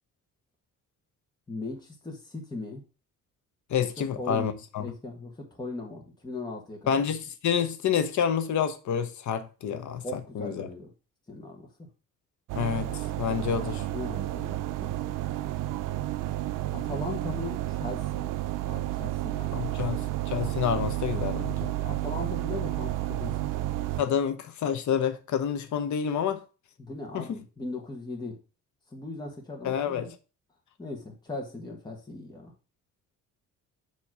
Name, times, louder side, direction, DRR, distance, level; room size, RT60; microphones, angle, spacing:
voice 1, 1.5-2.8 4.2-4.5 4.8-6.9 10.0-10.9 11.3-11.7 13.9-14.9 16.7-18.3 18.6-20.1 21.8-23.9 26.8-28.4 28.9-30.1 30.8-32.5, left 2 dB, 15° left, 1.4 m, -39 dB
voice 2, 3.7-4.9 6.9-10.7 12.5-13.9 19.5-21.7 24.0-26.4 27.1-27.4 29.6-30.1, left 8 dB, 65° left, 1.0 m, -28 dB
sound 1, 12.5-24.0, right 15 dB, 75° right, 0.5 m, -31 dB
7.3 x 3.1 x 6.0 m
cardioid pair, 125°, 32 cm